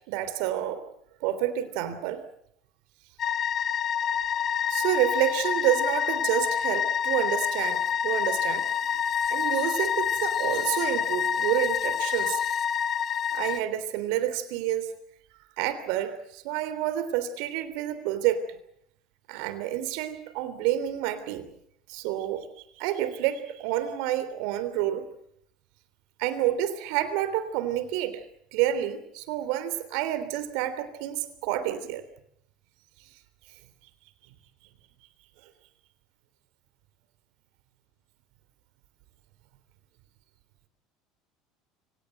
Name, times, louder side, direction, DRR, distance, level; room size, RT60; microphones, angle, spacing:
voice 1, 0.1-0.8 1.2-2.2 4.7-8.7 9.3-12.4 13.3-14.9 15.6-18.4 19.3-21.5 21.9-22.5 22.8-25.1 26.2-28.2 28.5-32.0, right 12 dB, 75° right, 13 dB, 3.3 m, -29 dB
sound 1, 3.2-13.6, left 8 dB, 40° left, 1.1 m, -27 dB
25.0 x 18.5 x 7.9 m, 0.71 s
supercardioid pair, 95°, 0 cm